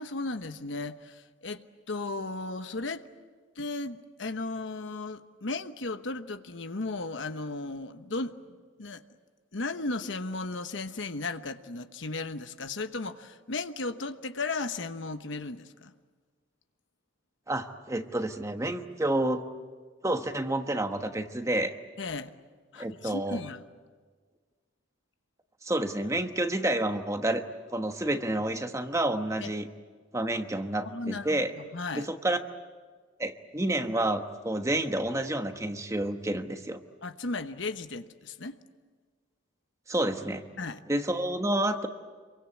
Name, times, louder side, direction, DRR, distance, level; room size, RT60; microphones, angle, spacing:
voice 1, 0.0-3.1 3.6-9.0 9.5-15.9 22.0-22.3 22.7-23.7 29.4-29.5 30.8-32.1 37.0-38.6 40.6-40.8, left 3 dB, 70° left, 9 dB, 1.1 m, -35 dB
voice 2, 17.5-19.4 20.0-21.7 22.8-23.4 25.6-27.4 27.7-29.7 30.1-31.5 32.0-32.4 33.2-36.8 39.9-40.4 40.9-41.9, right 1 dB, 15° right, 7 dB, 1.2 m, -29 dB
27.0 x 23.5 x 8.4 m, 1.5 s
head